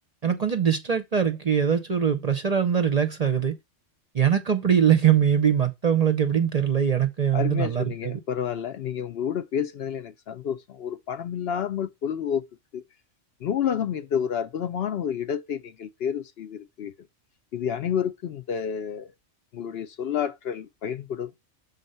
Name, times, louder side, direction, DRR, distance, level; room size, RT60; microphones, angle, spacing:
voice 1, 0.2-3.6 4.1-8.2, right 8 dB, 40° right, 0.6 m, -22 dB
voice 2, 7.3-12.4 12.7-12.8 13.4-16.9 17.5-19.1 19.5-21.3, left 8 dB, 65° left, 0.7 m, -29 dB
6.5 x 4.1 x 5.4 m
omnidirectional pair, 1.3 m